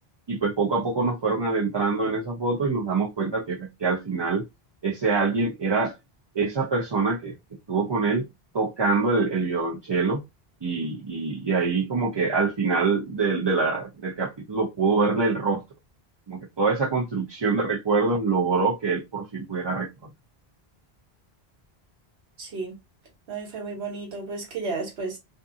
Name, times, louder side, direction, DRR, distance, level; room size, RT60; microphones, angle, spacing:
voice 1, 0.3-4.4 4.8-5.9 6.3-7.3 7.7-8.3 8.5-10.2 10.6-15.6 16.3-19.9, right 4 dB, 40° right, 0.4 m, -25 dB
voice 2, 22.4-22.8 23.3-25.2, right 3 dB, 80° right, 1.2 m, -33 dB
2.6 x 2.5 x 2.4 m
omnidirectional pair, 1.0 m